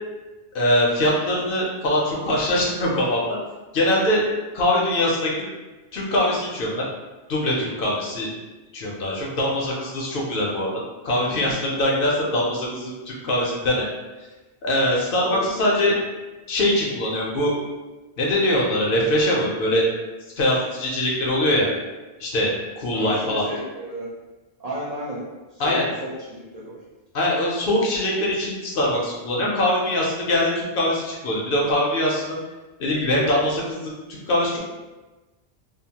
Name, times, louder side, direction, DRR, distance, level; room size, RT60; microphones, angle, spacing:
voice 1, 0.5-3.2 3.7-4.3 4.5-5.4 5.9-6.7 7.3-8.3 8.7-10.7 11.0-13.9 14.6-16.0 16.5-17.5 18.2-19.9 20.4-21.7 22.2-23.4 25.6-25.8 27.1-32.4 32.8-34.6, left 1 dB, 65° left, -3 dB, 0.7 m, -22 dB
voice 2, 15.2-16.0 22.9-24.1 24.6-25.2 25.5-26.8, right 1 dB, 50° right, -7 dB, 0.5 m, -33 dB
2.8 x 2.0 x 2.8 m, 1.2 s
omnidirectional pair, 1.1 m